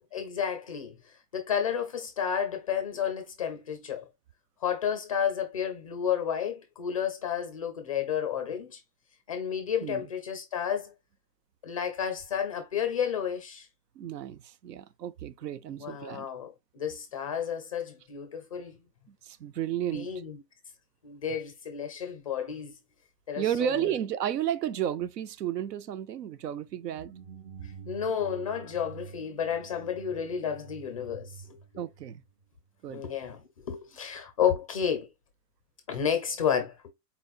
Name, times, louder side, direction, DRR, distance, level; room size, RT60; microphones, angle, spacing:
voice 1, 0.1-4.1 4.6-8.8 9.3-10.9 11.6-13.7 15.8-18.8 19.9-20.4 21.0-22.7 23.3-23.9 27.6-31.6 32.9-35.1 35.9-36.9, left 8 dB, 25° left, 0.4 m, -31 dB
voice 2, 14.0-16.3 19.1-20.1 23.4-27.1 31.8-32.2 32.8-33.0, right 11 dB, 85° right, 0.7 m, -32 dB
sound 1, 26.8-32.8, right 7 dB, 40° right, 0.9 m, -48 dB
4.2 x 4.1 x 2.3 m
hypercardioid pair, 145°, 47 cm